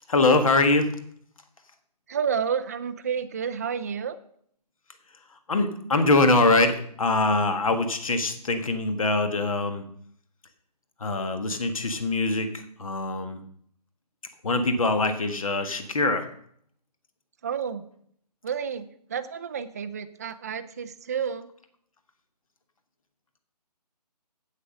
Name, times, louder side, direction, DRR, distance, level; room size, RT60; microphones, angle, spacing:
voice 1, 0.1-0.9 5.5-9.8 11.0-13.4 14.4-16.3, left 2 dB, 55° left, 8 dB, 1.6 m, -23 dB
voice 2, 2.1-4.2 17.4-17.9 18.4-21.5, right 7 dB, 25° right, 10 dB, 0.4 m, -30 dB
8.3 x 7.7 x 6.4 m, 0.65 s
figure-of-eight pair, 145°, 21 cm